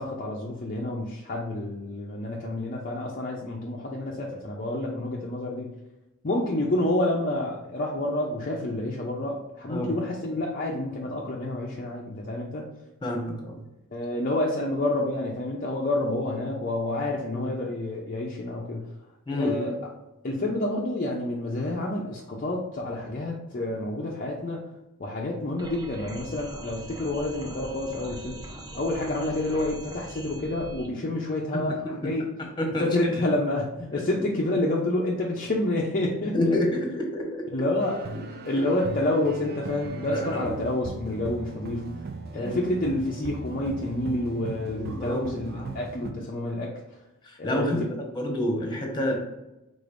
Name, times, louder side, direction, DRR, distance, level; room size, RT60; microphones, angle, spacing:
voice 1, 0.0-5.7 6.2-12.6 13.9-18.9 19.3-19.8 20.2-24.6 25.0-28.4 28.7-32.3 32.8-36.6 37.5-38.0 38.4-41.9 42.3-46.7 47.4-47.7, left 1 dB, 40° left, -3 dB, 0.6 m, -28 dB
voice 2, 13.0-13.6 17.3-17.4 19.3-19.7 31.5-31.9 32.6-32.9 36.3-37.5 40.1-40.6 42.3-42.6 44.7-45.2 45.5-45.8 47.2-49.1, left 1 dB, 20° left, 1 dB, 1.1 m, -28 dB
sound 1, 25.6-30.9, right 1 dB, 15° right, 0.8 m, -41 dB
sound 2, 37.8-46.1, right 3 dB, 45° right, 0.4 m, -38 dB
5.1 x 3.8 x 2.5 m, 0.95 s
head